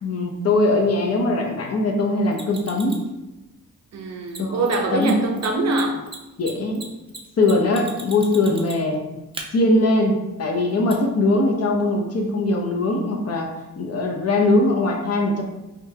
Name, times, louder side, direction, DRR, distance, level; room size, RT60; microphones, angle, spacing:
voice 1, 0.0-3.0 4.4-4.6 4.9-5.3 6.4-6.8 7.4-9.0 9.5-13.5 13.8-15.4, left 2 dB, 50° left, 1 dB, 0.7 m, -21 dB
Mechanisms, 2.3-3.1 4.3-4.4 4.6-4.8 5.0-5.1 5.4-8.9 9.3-9.4 10.9-11.0, right 3 dB, 15° right, 0.5 m, -37 dB
voice 2, 3.9-6.0, right 2 dB, 55° right, 3 dB, 0.6 m, -23 dB
5.1 x 2.3 x 2.8 m, 1.0 s
cardioid pair, 110°, 32 cm